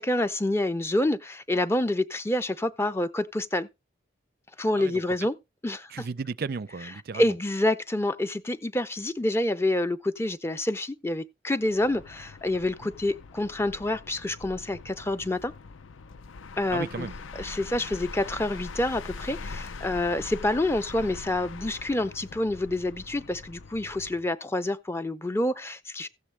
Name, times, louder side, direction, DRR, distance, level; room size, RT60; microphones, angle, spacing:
voice 1, 0.0-3.7 4.6-5.3 5.6-6.1 7.1-15.5 16.6-17.1 17.4-26.1, left 1 dB, 15° left, 0.5 m, -27 dB
voice 2, 4.7-5.2 5.9-7.4 16.7-17.2, right 4 dB, 50° right, 0.4 m, -35 dB
sound 1, 11.6-24.3, left 4 dB, 85° left, 0.5 m, -42 dB
15.0 x 7.2 x 3.3 m
head